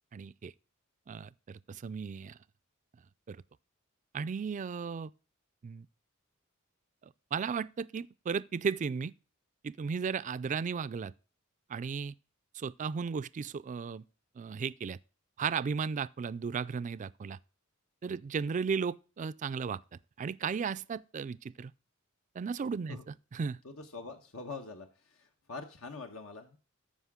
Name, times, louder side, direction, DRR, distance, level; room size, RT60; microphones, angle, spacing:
voice 1, 0.1-0.5 1.1-2.4 3.3-3.4 4.1-5.1 5.6-5.9 7.3-9.1 9.6-11.1 11.7-12.1 12.5-14.0 14.4-15.0 15.4-17.4 18.0-19.8 20.2-21.7 22.4-23.0 23.3-23.6, right 6 dB, 35° right, 0.3 m, -35 dB
voice 2, 23.6-26.6, left 4 dB, 90° left, 1.2 m, -44 dB
13.5 x 5.1 x 3.6 m
head